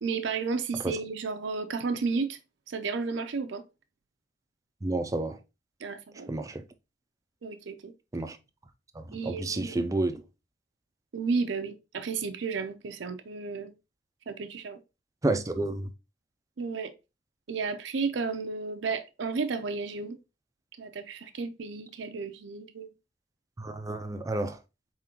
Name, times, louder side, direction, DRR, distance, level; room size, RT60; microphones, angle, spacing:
voice 1, 0.0-2.4 2.7-3.6 5.8-6.3 7.4-7.9 9.1-9.9 11.1-13.7 14.3-14.8 16.6-16.9 17.5-20.2 20.8-22.9, right 4 dB, 80° right, 0.5 m, -32 dB
voice 2, 4.8-5.4 6.3-6.6 8.1-8.4 9.0-10.2 15.2-15.9 23.6-24.6, right 2 dB, 20° right, 0.4 m, -30 dB
4.1 x 3.7 x 2.8 m
head